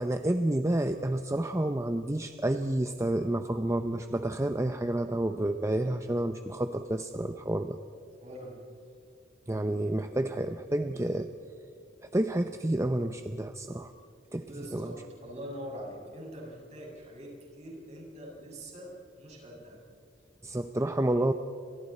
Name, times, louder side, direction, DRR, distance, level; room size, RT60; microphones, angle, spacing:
voice 1, 0.0-7.8 9.5-11.3 12.1-13.9 14.3-14.9 20.4-21.3, right 1 dB, 15° right, 8 dB, 0.6 m, -29 dB
voice 2, 8.2-8.6 14.4-19.8, equal, 40° right, -2 dB, 6.8 m, -43 dB
29.5 x 26.5 x 4.3 m, 2.5 s
head